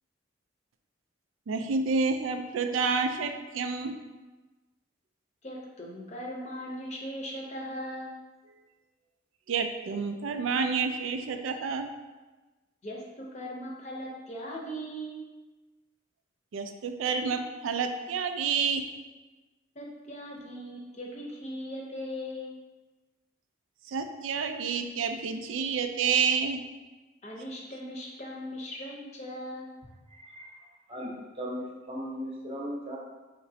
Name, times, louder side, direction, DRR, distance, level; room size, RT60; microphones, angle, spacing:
voice 1, 1.5-3.9 9.5-11.9 16.5-18.8 23.9-26.6, right 5 dB, 90° right, 6 dB, 0.4 m, -29 dB
voice 2, 5.4-8.2 10.3-10.4 12.8-15.3 19.7-22.5 27.2-29.8, equal, 35° left, -2 dB, 0.6 m, -39 dB
voice 3, 30.1-30.5 30.9-33.0, equal, 30° right, -3 dB, 0.7 m, -37 dB
5.0 x 3.0 x 2.7 m, 1.2 s
head